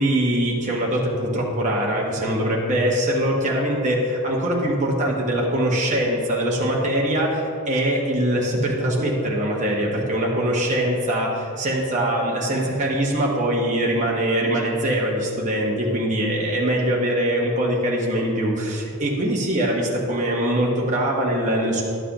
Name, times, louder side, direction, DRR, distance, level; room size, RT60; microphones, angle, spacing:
voice 1, 0.0-21.8, right 1 dB, 35° right, -3 dB, 1.1 m, -22 dB
11.5 x 7.4 x 2.9 m, 2.4 s
head